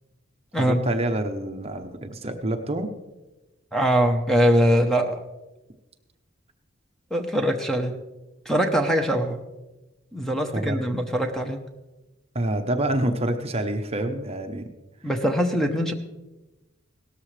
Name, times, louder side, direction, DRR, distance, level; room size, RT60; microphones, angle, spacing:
voice 1, 0.6-2.9 10.5-10.8 12.3-14.7, right 1 dB, 30° right, 6 dB, 0.8 m, -27 dB
voice 2, 3.7-5.2 7.1-8.0 8.4-9.4 10.1-11.6 15.0-15.9, equal, ahead, 5 dB, 0.9 m, -22 dB
17.5 x 13.5 x 3.3 m, 1.1 s
head